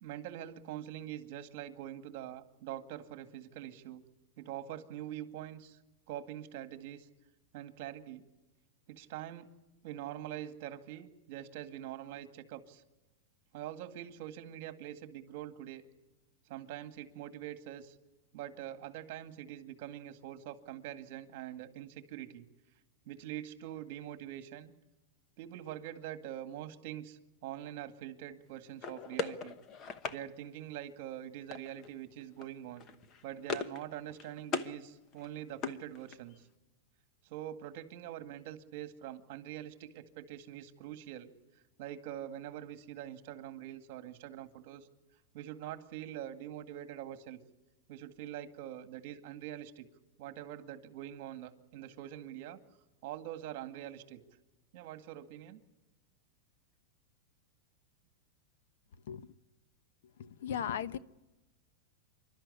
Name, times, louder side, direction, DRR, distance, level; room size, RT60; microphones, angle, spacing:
voice 1, 0.0-4.0 4.4-5.8 6.1-7.1 7.5-8.2 8.9-9.5 9.8-12.8 13.5-15.8 16.5-17.9 18.3-22.5 23.1-24.7 25.4-29.6 30.1-32.8 33.2-36.5 37.2-41.3 41.8-44.9 45.3-47.4 47.9-49.8 50.2-52.6 53.0-54.2 54.7-55.6, right 12 dB, 50° right, 2.0 m, -44 dB
sound 1, 28.8-30.2 31.5-31.9 32.2-32.5 32.8-33.8 34.1-34.7 35.1-36.4, left 5 dB, 25° left, 1.0 m, -39 dB
voice 2, 60.2-61.0, left 9 dB, 70° left, 1.0 m, -36 dB
28.0 x 12.5 x 9.8 m
supercardioid pair, 160°, 0 cm